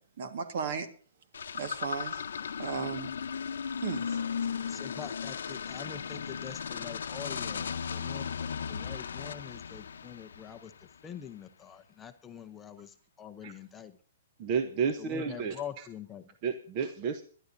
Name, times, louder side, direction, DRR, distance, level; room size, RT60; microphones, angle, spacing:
voice 1, 0.2-0.9 1.5-2.2 2.6-3.1 3.8-4.2, right 6 dB, 55° right, 9 dB, 1.6 m, -35 dB
sound 1, 1.3-10.9, left 7 dB, 90° left, 0.8 m, -36 dB
voice 2, 4.7-10.7 11.0-14.0 15.0-16.2, left 8 dB, 10° left, 7 dB, 0.7 m, -45 dB
voice 3, 14.4-15.9 16.4-17.2, right 6 dB, 30° right, 8 dB, 0.9 m, -31 dB
23.0 x 11.5 x 2.7 m, 0.43 s
hypercardioid pair, 160°, 0 cm